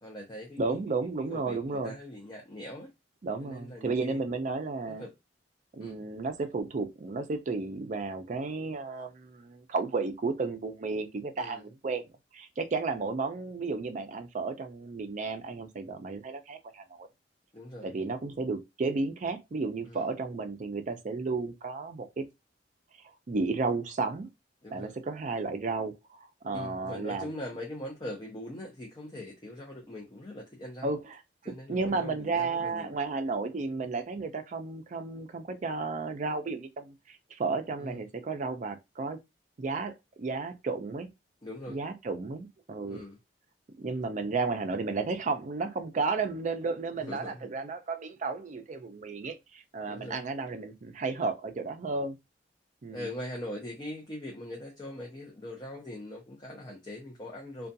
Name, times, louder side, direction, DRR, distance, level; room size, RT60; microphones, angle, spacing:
voice 1, 0.0-0.8 1.3-2.9 3.4-4.4 4.8-5.1 5.8-6.0 11.4-11.7 17.5-17.9 19.9-20.1 24.6-24.9 26.5-30.9 31.4-32.9 37.8-38.0 41.4-41.8 42.9-43.2 47.0-47.5 49.9-50.3 52.9-57.7, left 1 dB, 25° left, 0.6 m, -41 dB
voice 2, 0.6-1.9 3.2-5.0 5.7-12.0 12.3-17.1 17.8-22.2 23.3-24.3 24.7-27.3 30.8-31.0 31.4-39.2 39.6-41.1 41.7-43.0 43.8-52.2 52.8-53.1, right 3 dB, 40° right, 0.4 m, -33 dB
2.4 x 2.2 x 2.6 m
head